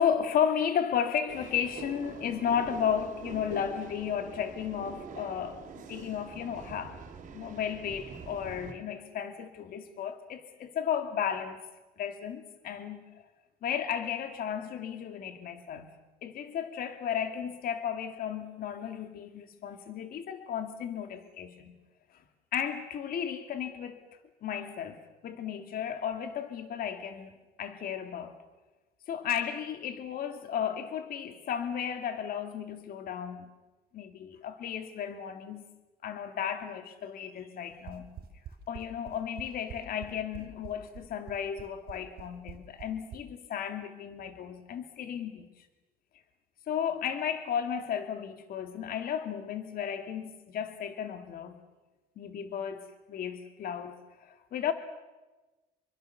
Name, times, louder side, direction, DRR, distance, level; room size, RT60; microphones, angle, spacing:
voice 1, 0.0-5.6 5.9-7.0 7.3-11.6 12.0-13.0 13.6-15.9 16.2-21.8 22.5-24.0 24.4-27.3 27.6-28.4 29.1-33.5 33.9-35.6 36.0-38.1 38.7-45.7 46.7-51.6 52.2-54.7, left 8 dB, 60° left, 2.4 m, -34 dB
sound 1, 1.3-8.7, right 5 dB, 50° right, 3.9 m, -45 dB
sound 2, 37.7-43.2, right 10 dB, 65° right, 3.6 m, -45 dB
27.0 x 23.5 x 6.9 m
cardioid pair, 110°, 17 cm